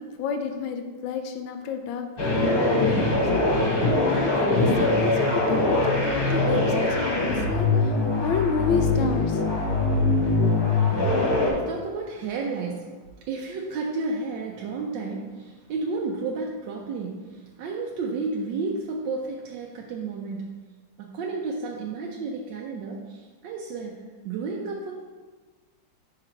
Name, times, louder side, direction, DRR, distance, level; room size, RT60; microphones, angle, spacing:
voice 1, 0.2-3.3 4.0-9.4, left 6 dB, 75° left, 6 dB, 1.2 m, -30 dB
sound 1, 2.2-11.5, left 2 dB, 50° left, 1.4 m, -22 dB
voice 2, 11.4-12.9 13.3-20.5 21.0-24.0 24.2-24.9, right 4 dB, 70° right, -1 dB, 1.2 m, -32 dB
5.7 x 3.9 x 4.4 m, 1.3 s
omnidirectional pair, 2.3 m